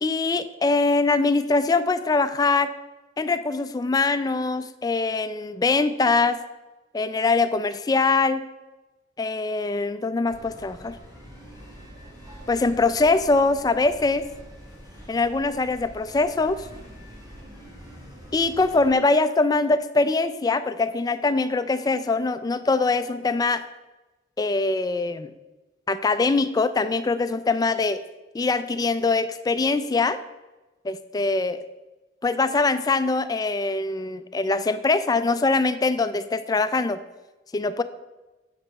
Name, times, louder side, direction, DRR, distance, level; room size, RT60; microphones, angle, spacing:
voice 1, 0.0-2.7 3.2-6.4 6.9-8.4 9.2-11.0 12.5-14.2 15.1-16.7 18.3-23.6 24.4-25.3 25.9-28.0 28.3-30.2 30.8-31.6 32.2-37.0 37.5-37.8, left 3 dB, 20° left, 11 dB, 0.3 m, -23 dB
sound 1, 10.3-19.0, equal, 25° right, 2.7 m, -45 dB
7.5 x 4.5 x 5.2 m, 1.1 s
head